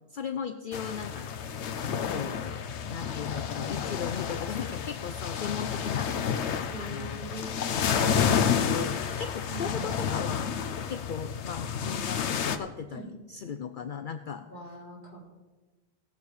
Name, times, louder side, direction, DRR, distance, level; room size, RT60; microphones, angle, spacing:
voice 1, 0.1-1.5 2.0-6.5 6.8-7.2 8.1-10.5 10.9-14.5, left 7 dB, 55° left, 9 dB, 0.6 m, -37 dB
sound 1, 0.7-12.6, left 7 dB, 90° left, 1.1 m, -30 dB
voice 2, 6.7-7.8 9.5-9.9 12.9-13.1 14.5-15.3, right 1 dB, 45° right, -6 dB, 4.6 m, -42 dB
18.0 x 7.0 x 4.8 m, 1.2 s
omnidirectional pair, 1.1 m